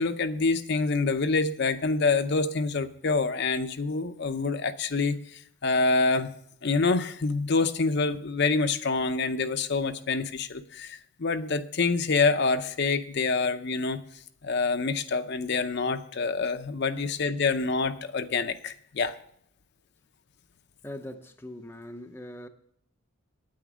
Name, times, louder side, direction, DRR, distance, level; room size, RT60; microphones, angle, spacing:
voice 1, 0.0-6.3 6.6-14.0 14.4-19.2, left 4 dB, 55° left, 9 dB, 0.6 m, -26 dB
voice 2, 20.8-22.5, left 1 dB, 10° left, 6 dB, 0.6 m, -41 dB
9.3 x 8.6 x 6.1 m, 0.67 s
head